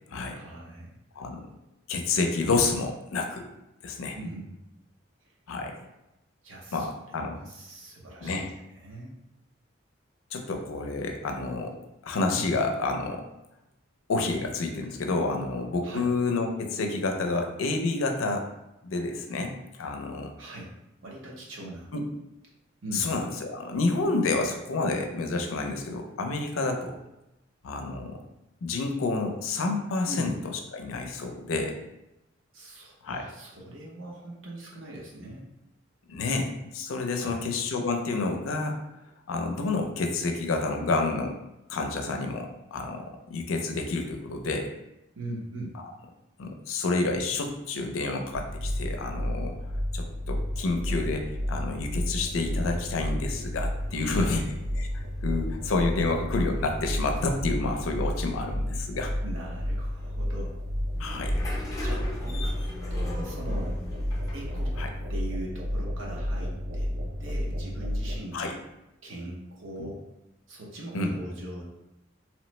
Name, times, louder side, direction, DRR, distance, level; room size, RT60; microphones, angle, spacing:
voice 1, 0.3-0.9 4.1-4.5 6.4-9.1 12.3-12.5 15.8-16.1 20.4-20.7 21.0-21.9 22.8-23.1 30.1-30.3 32.5-35.4 37.1-37.4 45.2-45.8 53.9-54.5 59.2-60.6 61.8-62.5 62.9-63.8 64.3-64.7 65.1-66.9 67.2-68.5 69.0-70.0 70.5-71.6, right 1 dB, 70° right, -3 dB, 0.7 m, -41 dB
voice 2, 1.9-3.5 3.8-4.2 5.5-5.8 6.7-7.4 8.2-8.5 10.3-11.8 12.0-13.2 14.1-18.5 18.8-20.3 21.9-22.1 22.9-27.0 27.6-28.2 28.6-30.3 30.7-31.7 33.0-33.2 36.1-38.8 39.3-41.4 41.7-44.7 46.4-49.5 49.9-54.4 54.8-59.1 61.0-61.3 64.8-64.9 68.3-68.5 70.9-71.1, left 3 dB, 90° left, 4 dB, 0.4 m, -29 dB
sound 1, 48.3-68.2, equal, 45° right, 0.4 m, -31 dB
sound 2, 53.3-65.0, left 1 dB, 15° left, 0.5 m, -41 dB
3.0 x 2.0 x 3.0 m, 0.91 s
head